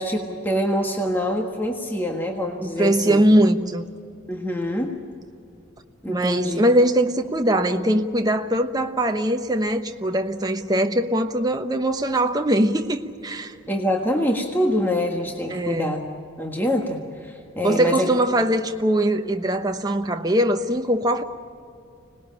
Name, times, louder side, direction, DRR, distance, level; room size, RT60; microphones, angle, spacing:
voice 1, 0.0-3.2 4.3-5.0 6.0-6.6 13.7-16.0 16.4-18.1, left 1 dB, 10° left, 1.6 m, -25 dB
voice 2, 2.6-3.8 6.1-13.5 15.5-15.9 17.6-21.2, right 1 dB, 20° right, 1.0 m, -21 dB
25.5 x 19.5 x 8.9 m
head